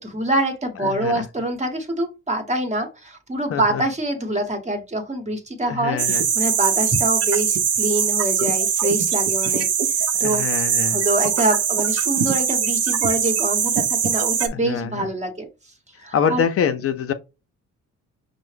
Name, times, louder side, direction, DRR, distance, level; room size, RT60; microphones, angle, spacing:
voice 1, 0.0-9.7 10.0-10.4 10.9-15.5 16.0-16.4, right 1 dB, 25° right, 1.0 m, -25 dB
voice 2, 0.8-1.2 3.5-3.8 5.6-6.3 10.1-11.0 14.5-15.1 16.1-17.1, left 7 dB, 50° left, 0.5 m, -25 dB
sound 1, 6.0-14.5, right 7 dB, 55° right, 0.7 m, -21 dB
5.5 x 2.0 x 3.2 m
cardioid pair, 90°, 30 cm